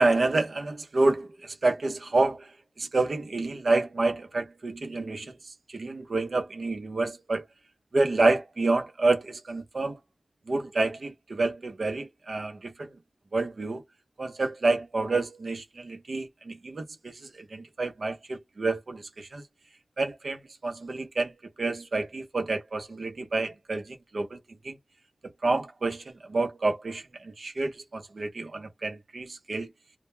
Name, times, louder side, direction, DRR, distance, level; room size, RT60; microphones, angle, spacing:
voice 1, 0.0-2.5 2.8-7.4 7.9-10.0 10.5-12.9 13.3-13.8 14.2-19.4 20.0-21.3 21.6-24.4 24.6-24.8 25.2-29.7, right 3 dB, 75° right, 0.7 m, -28 dB
2.2 x 2.1 x 3.1 m
wide cardioid pair, 70°, 0 cm